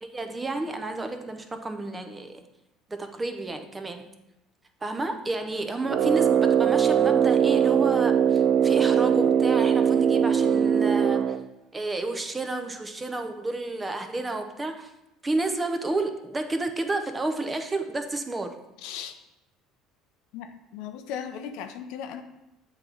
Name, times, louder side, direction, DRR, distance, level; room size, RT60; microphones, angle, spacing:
voice 1, 0.0-2.4 2.9-4.1 4.8-11.3 11.7-14.9 15.2-18.5, right 2 dB, 20° right, 6 dB, 0.7 m, -31 dB
Brass instrument, 5.8-11.5, right 8 dB, 55° right, 0.3 m, -21 dB
voice 2, 18.8-19.1 20.3-22.2, left 8 dB, 75° left, 8 dB, 0.5 m, -37 dB
7.7 x 3.0 x 5.2 m, 0.91 s
supercardioid pair, 90°, 0 cm